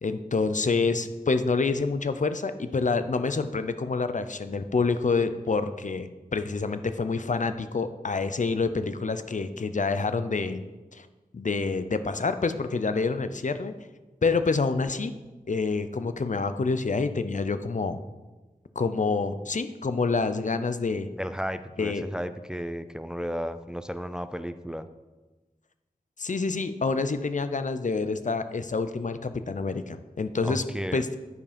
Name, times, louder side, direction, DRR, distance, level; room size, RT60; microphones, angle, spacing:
voice 1, 0.0-10.6 10.9-11.1 11.3-13.7 14.2-15.1 15.5-18.0 18.8-21.1 21.8-22.0 26.2-30.6 30.9-31.2, left 4 dB, 55° left, 10 dB, 0.6 m, -27 dB
voice 2, 21.2-24.9 30.4-31.0, equal, 5° right, 11 dB, 0.4 m, -33 dB
9.5 x 4.9 x 5.1 m, 1.2 s
wide cardioid pair, 50°, 15 cm